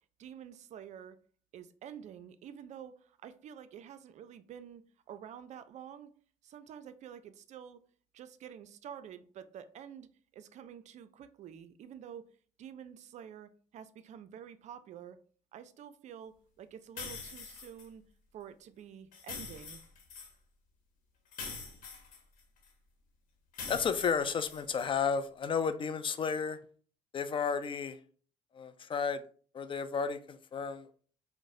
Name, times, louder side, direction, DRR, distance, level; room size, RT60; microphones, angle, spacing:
voice 1, 0.2-1.2 1.5-6.1 6.4-7.8 8.1-10.1 10.3-12.3 12.6-15.2 15.5-18.0 18.3-19.8, right 9 dB, 50° right, 0.4 m, -49 dB
sound 1, 17.0-17.9 19.1-20.3 21.3-22.7 23.5-24.9, left 5 dB, 65° left, 1.0 m, -44 dB
voice 2, 23.7-26.6 27.1-28.0 28.5-29.2 29.5-30.9, left 6 dB, 35° left, 0.4 m, -32 dB
4.6 x 2.1 x 2.6 m
hypercardioid pair, 60°, 15 cm